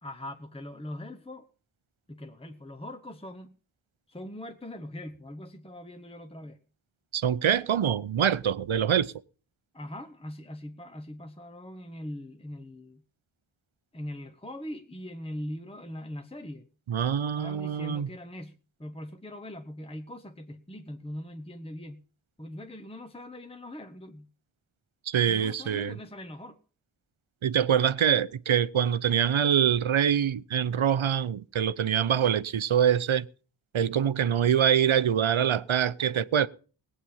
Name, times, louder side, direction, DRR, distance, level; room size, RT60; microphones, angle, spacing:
voice 1, 0.0-1.5 2.1-3.5 4.1-6.6 9.7-13.0 13.9-16.7 17.4-18.5 18.8-22.0 22.4-24.3 25.2-26.6, left 1 dB, 10° left, 1.0 m, -41 dB
voice 2, 7.1-9.1 16.9-18.1 25.1-26.0 27.4-33.3 33.7-36.5, right 9 dB, 80° right, 0.7 m, -24 dB
18.5 x 8.7 x 5.5 m
wide cardioid pair, 70°, 48 cm